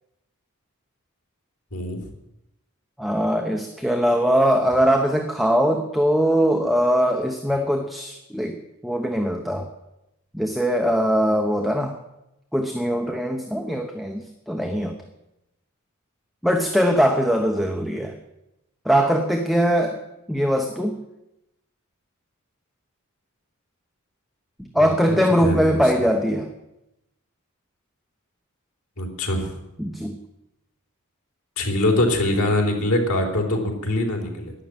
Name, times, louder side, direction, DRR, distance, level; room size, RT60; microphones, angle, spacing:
voice 1, 1.7-2.0 24.8-25.8 29.0-29.5 31.6-34.5, left 1 dB, 80° left, 2 dB, 3.6 m, -23 dB
voice 2, 3.0-8.6 8.8-9.7 10.3-12.0 12.5-14.9 16.4-18.1 18.8-20.0 20.3-21.0 24.7-26.5 29.8-30.2, equal, ahead, 3 dB, 1.0 m, -21 dB
11.5 x 11.0 x 9.1 m, 0.90 s
head